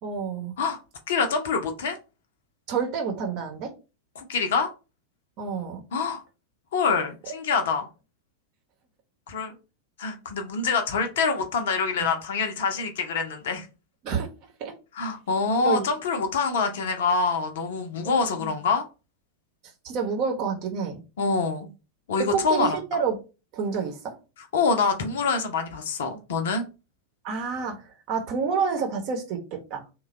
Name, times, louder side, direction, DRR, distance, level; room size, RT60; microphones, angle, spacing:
voice 1, 0.0-0.5 2.7-3.7 5.4-5.8 7.3-7.4 12.0-12.1 14.0-14.3 14.6-14.7 15.6-15.9 18.0-18.5 19.8-21.0 22.2-23.2 23.5-24.1 27.2-29.8, right 5 dB, 40° right, 0.9 m, -29 dB
voice 2, 1.1-2.0 4.2-4.7 5.9-6.2 6.7-7.9 9.3-9.5 10.0-13.7 14.9-18.8 21.2-21.7 22.1-22.8 24.5-26.6, left 4 dB, 60° left, 0.6 m, -25 dB
3.2 x 2.2 x 3.9 m
figure-of-eight pair, 90°, 0 cm